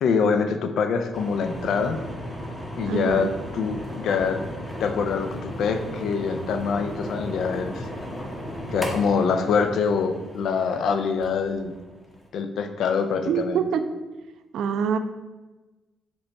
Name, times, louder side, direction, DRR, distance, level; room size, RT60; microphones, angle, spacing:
voice 1, 0.0-2.0 2.7-4.4 4.8-7.8 8.7-11.7 12.3-13.6, left 5 dB, 70° left, 7 dB, 0.4 m, -25 dB
sound 1, 1.1-12.3, equal, 15° left, 0.9 m, -35 dB
voice 2, 2.9-3.3 13.3-13.8 14.5-15.0, right 7 dB, 75° right, 9 dB, 0.3 m, -25 dB
5.2 x 2.3 x 4.0 m, 1.1 s
cardioid pair, 90°, 0 cm